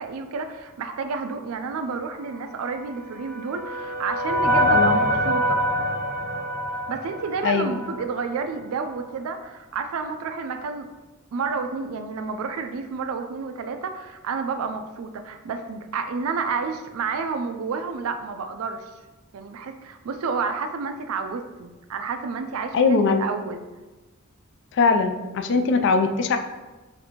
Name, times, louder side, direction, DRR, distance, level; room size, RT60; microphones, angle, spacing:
voice 1, 0.0-5.6 6.9-10.9 11.3-18.9 19.3-23.7, right 5 dB, 85° right, 7 dB, 0.4 m, -30 dB
sound 1, 2.8-8.1, equal, 15° left, 0.6 m, -24 dB
voice 2, 7.4-7.8 22.7-23.3 24.7-26.4, left 4 dB, 55° left, 7 dB, 0.3 m, -21 dB
4.2 x 2.6 x 2.8 m, 1.2 s
head